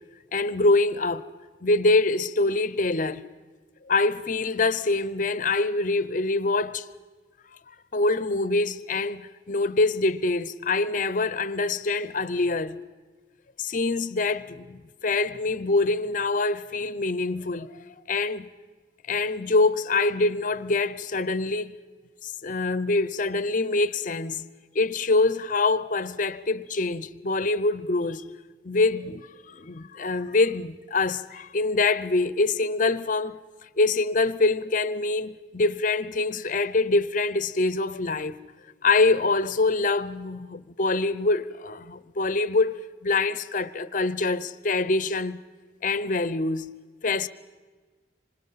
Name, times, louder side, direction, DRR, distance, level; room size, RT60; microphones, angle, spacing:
voice 1, 0.3-1.3 1.6-3.2 3.9-6.9 7.9-12.8 13.6-18.5 19.1-21.7 22.2-24.5 24.7-28.3 28.6-33.4 33.8-38.3 38.8-45.4 45.8-46.7 47.0-47.3, left 3 dB, 50° left, 0.7 m, -25 dB
26.5 x 25.5 x 5.7 m
head